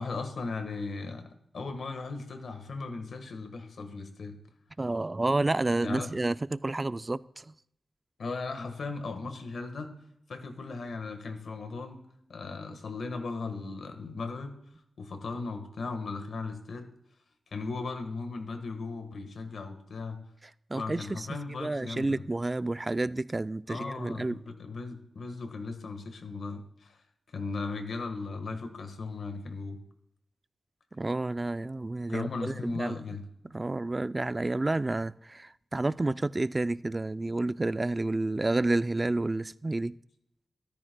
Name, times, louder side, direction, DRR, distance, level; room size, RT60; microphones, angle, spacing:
voice 1, 0.0-4.4 5.8-6.1 8.2-9.9 10.3-12.0 12.3-14.5 15.0-16.9 17.5-20.2 20.7-22.2 23.7-27.0 27.3-29.8 32.1-33.2, left 3 dB, 75° left, 1.4 m, -37 dB
voice 2, 4.8-7.5 20.7-24.4 30.9-33.0 33.5-39.9, right 2 dB, 25° right, 0.3 m, -30 dB
13.5 x 13.5 x 2.2 m
wide cardioid pair, 95°, 0 cm